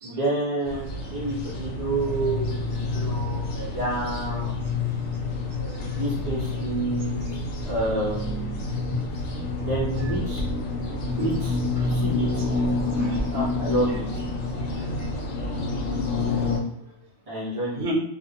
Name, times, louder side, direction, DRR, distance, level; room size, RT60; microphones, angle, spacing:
voice 1, 0.0-2.5 2.9-4.6 5.9-7.3 7.7-8.6 9.6-10.4 11.0-12.4 13.3-14.1 17.3-17.8, right 2 dB, 45° right, -7 dB, 0.5 m, -29 dB
sound 1, 0.6-16.6, left 3 dB, 75° left, 0.9 m, -28 dB
voice 2, 5.6-5.9 11.2-11.4 12.8-13.2 14.6-14.7 15.0-15.6 17.7-17.9, equal, 65° right, -1 dB, 1.0 m, -34 dB
2.4 x 2.1 x 2.7 m, 0.71 s
omnidirectional pair, 1.4 m